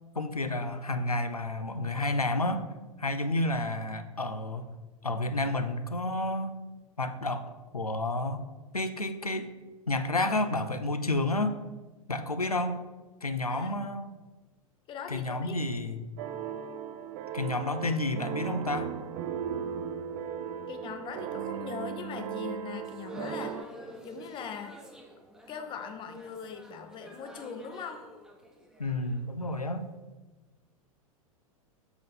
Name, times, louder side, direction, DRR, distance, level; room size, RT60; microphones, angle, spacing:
voice 1, 0.2-2.7 3.0-4.7 5.0-6.5 7.0-8.4 8.7-9.5 9.9-11.6 12.1-12.8 13.2-14.1 15.1-16.1 17.3-18.9 28.8-29.8, left 2 dB, 90° left, 10 dB, 0.6 m, -30 dB
voice 2, 14.9-15.6 20.7-23.7 24.0-24.8 25.5-28.1, left 6 dB, 25° left, 7 dB, 0.8 m, -40 dB
sound 1, 16.2-23.6, right 8 dB, 30° right, 0.3 m, -37 dB
sound 2, 22.8-29.8, equal, 5° right, 1.0 m, -49 dB
7.8 x 3.8 x 5.6 m, 1.2 s
figure-of-eight pair, 95°, 19 cm